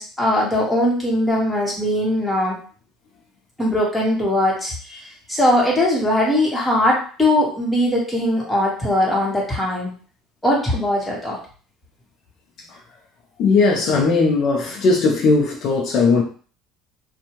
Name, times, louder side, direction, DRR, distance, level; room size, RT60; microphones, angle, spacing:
voice 1, 0.0-2.6 3.6-5.0 5.3-9.9 10.4-11.4, left 1 dB, 10° left, -4 dB, 1.3 m, -20 dB
voice 2, 13.4-16.2, left 4 dB, 60° left, 0 dB, 0.6 m, -18 dB
2.6 x 2.2 x 3.0 m, 0.40 s
supercardioid pair, 105°, 0 cm